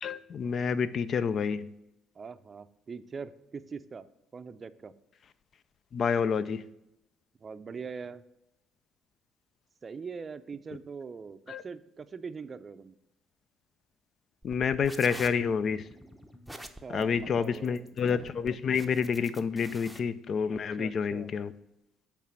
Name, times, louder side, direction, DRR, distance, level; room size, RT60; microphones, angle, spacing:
voice 1, 0.0-1.7 5.9-6.6 11.5-11.6 14.4-15.9 16.9-21.5, left 6 dB, 55° left, 16 dB, 0.4 m, -29 dB
voice 2, 2.2-4.1 4.3-4.9 7.4-8.2 9.8-12.9 16.6-17.9 20.8-21.3, right 5 dB, 40° right, 12 dB, 0.5 m, -42 dB
sound 1, 14.4-20.0, equal, 5° left, 0.8 m, -47 dB
8.4 x 3.4 x 6.1 m, 0.87 s
hypercardioid pair, 60°, 0 cm